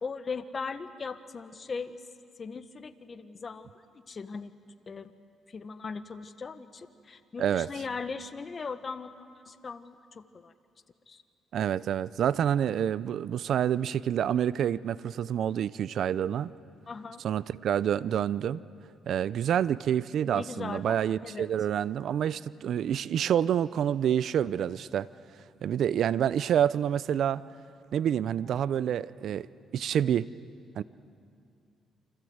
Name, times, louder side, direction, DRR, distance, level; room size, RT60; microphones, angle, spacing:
voice 1, 0.0-2.0 2.4-4.5 4.9-5.1 5.5-10.5 11.1-11.2 16.9-17.2 20.3-21.5, left 4 dB, 40° left, 10 dB, 1.4 m, -39 dB
voice 2, 11.5-16.5 17.2-18.6 19.1-25.1 25.6-27.4 27.9-29.5 29.7-30.3 30.8-30.9, right 9 dB, 70° right, 18 dB, 0.6 m, -27 dB
29.0 x 26.0 x 8.0 m, 2.4 s
cardioid pair, 90°, 0 cm